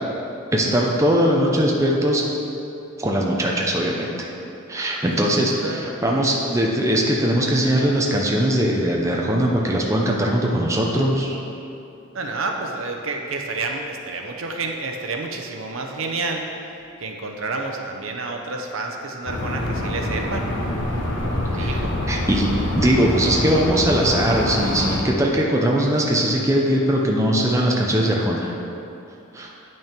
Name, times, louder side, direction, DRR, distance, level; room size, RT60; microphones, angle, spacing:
voice 1, 0.5-2.2 3.0-4.3 4.7-11.4 21.6-21.8 22.1-22.5 22.8-28.5 29.3-29.5, equal, 15° right, -2 dB, 0.7 m, -20 dB
voice 2, 4.8-6.2 12.1-16.5 17.0-20.5 21.5-21.9, right 3 dB, 75° right, 2 dB, 0.8 m, -30 dB
sound 1, 19.3-25.0, left 1 dB, 65° left, 1.1 m, -25 dB
8.7 x 6.2 x 4.5 m, 2.8 s
head